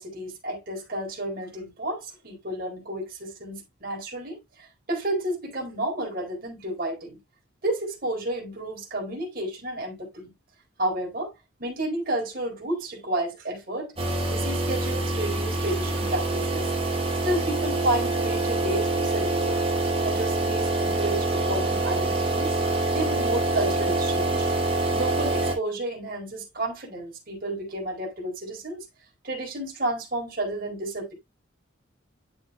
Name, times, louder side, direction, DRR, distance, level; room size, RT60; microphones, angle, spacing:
voice 1, 0.0-7.2 7.6-10.3 10.8-11.3 11.6-13.9 14.3-16.7 17.2-19.6 20.0-22.6 22.9-24.5 24.9-28.8 29.2-31.1, right 1 dB, 50° right, 4.5 m, -31 dB
sound 1, 14.0-25.5, right 2 dB, 30° right, 4.0 m, -25 dB
11.0 x 7.0 x 2.3 m
head